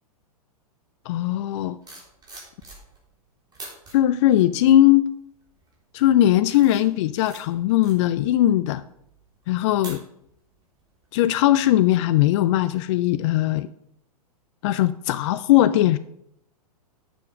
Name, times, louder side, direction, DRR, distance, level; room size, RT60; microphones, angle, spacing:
voice 1, 1.1-1.8 3.9-5.1 5.9-8.8 9.5-10.0 11.1-13.7 14.6-16.0, left 13 dB, 50° left, 14 dB, 0.4 m, -19 dB
sound 1, 1.6-3.1 3.5-3.9 4.6-4.9 5.4-5.8 6.2-10.5 10.8-11.1, right 2 dB, 20° right, 3.3 m, -45 dB
7.0 x 6.8 x 5.7 m, 0.75 s
hypercardioid pair, 110°, 20 cm